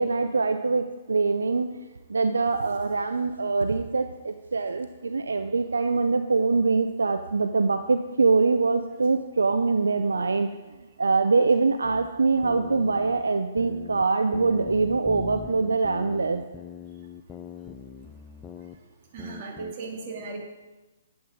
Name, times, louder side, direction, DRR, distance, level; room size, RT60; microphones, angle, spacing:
voice 1, 0.0-1.7 2.1-10.6 11.0-16.4, right 4 dB, 80° right, 9 dB, 0.5 m, -24 dB
sound 1, 11.8-14.1 14.3-18.8 19.2-19.7, left 8 dB, 15° left, 0.5 m, -42 dB
voice 2, 19.1-20.4, right 4 dB, 45° right, 0 dB, 2.6 m, -36 dB
11.0 x 8.0 x 5.2 m, 1.1 s
figure-of-eight pair, 125°, 0 cm